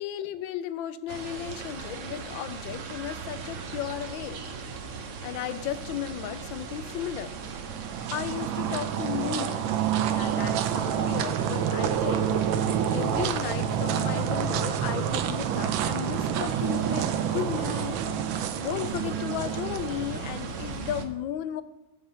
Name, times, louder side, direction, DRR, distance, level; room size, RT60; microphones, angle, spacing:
voice 1, 0.0-4.4 5.2-7.4 8.1-9.7 10.0-12.3 12.9-18.0 18.6-21.6, left 11 dB, 85° left, 12 dB, 1.4 m, -34 dB
sound 1, 1.1-21.0, right 5 dB, 55° right, 0.9 m, -38 dB
sound 2, 7.4-20.7, right 9 dB, 85° right, 1.4 m, -28 dB
7.1 x 5.6 x 6.8 m, 0.92 s
omnidirectional pair, 2.1 m